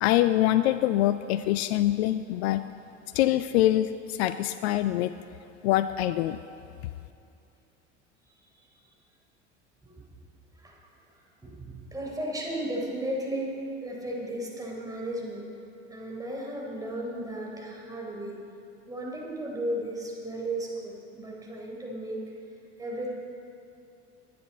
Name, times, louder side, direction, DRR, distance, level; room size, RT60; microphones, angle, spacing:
voice 1, 0.0-2.6 3.1-5.1 5.6-6.4, left 14 dB, 60° left, 13 dB, 0.5 m, -24 dB
voice 2, 11.4-13.5 13.8-15.5 15.9-18.4 18.9-22.2 22.8-23.1, right 1 dB, 10° right, -2 dB, 3.7 m, -34 dB
22.0 x 9.4 x 4.3 m, 2.7 s
figure-of-eight pair, 75°, 37 cm